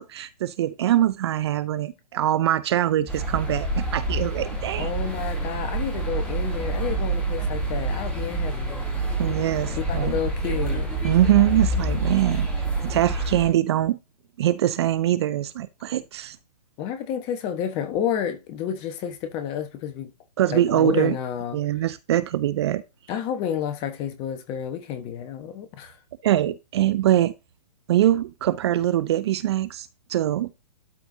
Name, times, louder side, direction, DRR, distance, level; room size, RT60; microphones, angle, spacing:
voice 1, 0.0-4.9 9.2-10.2 11.0-12.5 12.8-14.0 14.4-16.4 20.4-21.2 21.5-22.8 26.2-27.3 27.9-30.5, right 12 dB, 40° right, 0.5 m, -23 dB
sound 1, 3.1-13.5, right 2 dB, 5° left, 2.9 m, -27 dB
voice 2, 4.8-8.8 9.7-10.9 16.8-20.1 20.5-21.6 23.1-26.0, left 9 dB, 25° left, 1.2 m, -30 dB
12.0 x 4.5 x 2.7 m
figure-of-eight pair, 130°, 21 cm